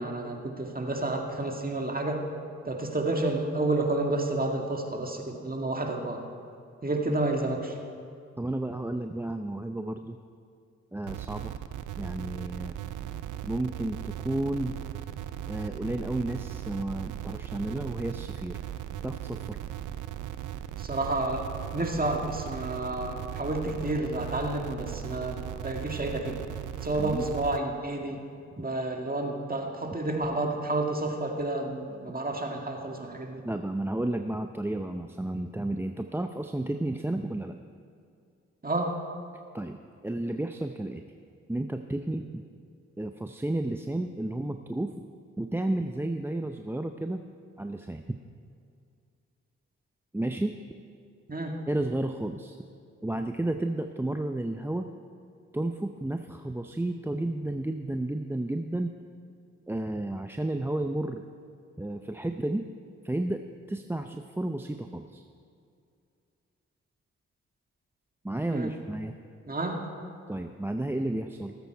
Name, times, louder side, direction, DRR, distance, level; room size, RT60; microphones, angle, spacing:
voice 1, 0.0-2.2 2.6-6.2 6.8-7.8 20.8-26.4 26.8-28.2 28.6-33.4 38.6-39.0 51.3-51.6 68.5-68.7 69.5-69.8, right 2 dB, 30° right, 2 dB, 1.9 m, -30 dB
voice 2, 8.4-10.2 10.9-11.5 12.0-12.8 13.4-14.7 15.5-18.6 19.0-19.6 27.0-27.3 33.4-37.6 39.5-41.0 41.5-42.4 43.0-45.0 45.4-47.2 47.6-48.2 50.1-50.5 51.7-52.6 53.0-54.9 55.5-58.9 59.7-61.2 61.8-62.7 63.0-63.4 63.7-65.2 68.2-69.1 70.3-71.5, right 1 dB, 5° right, 6 dB, 0.6 m, -32 dB
sound 1, 11.0-27.6, right 11 dB, 80° right, 0.6 m, -38 dB
18.0 x 8.1 x 4.6 m, 2.4 s
supercardioid pair, 40°, 30 cm